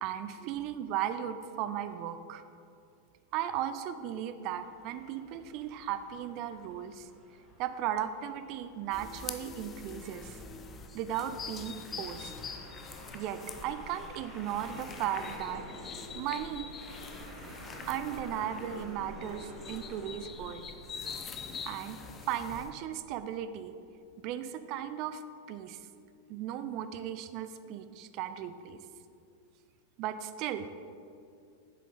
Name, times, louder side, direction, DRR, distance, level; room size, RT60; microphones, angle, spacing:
voice 1, 0.0-2.4 3.3-7.1 7.6-10.4 10.9-12.3 13.1-15.6 16.1-16.7 17.9-20.6 21.7-22.0 22.3-23.7 24.2-25.2 25.5-25.8 26.3-28.8 30.0-30.7, right 10 dB, 40° right, 11 dB, 0.4 m, -36 dB
sound 1, 4.5-22.1, equal, ahead, 1.7 m, -50 dB
sound 2, 8.9-22.7, left 5 dB, 25° left, 0.5 m, -45 dB
7.3 x 7.3 x 4.1 m, 2.4 s
figure-of-eight pair, 90°, 0 cm